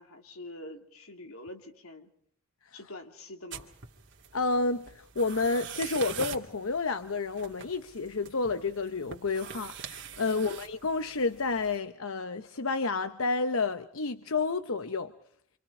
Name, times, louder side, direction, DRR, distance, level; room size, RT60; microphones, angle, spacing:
voice 1, 0.0-2.1 2.7-3.7 10.2-10.5, left 2 dB, 85° left, 3.0 m, -45 dB
sound 1, 3.5-11.8, right 7 dB, 55° right, 2.4 m, -44 dB
voice 2, 4.3-15.1, left 3 dB, 70° left, 0.9 m, -30 dB
27.5 x 27.0 x 4.9 m
head